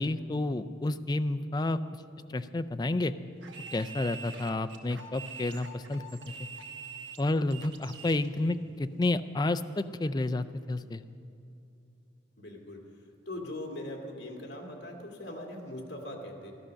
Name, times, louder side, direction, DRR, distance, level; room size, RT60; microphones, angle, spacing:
voice 1, 0.0-1.8 2.3-3.1 3.7-6.0 7.2-11.0, left 2 dB, 20° left, 10 dB, 0.3 m, -30 dB
sound 1, 3.4-8.3, right 4 dB, 80° right, 1.2 m, -45 dB
voice 2, 12.4-16.5, left 1 dB, 65° left, 1 dB, 2.1 m, -41 dB
13.0 x 12.5 x 6.3 m, 2.7 s
head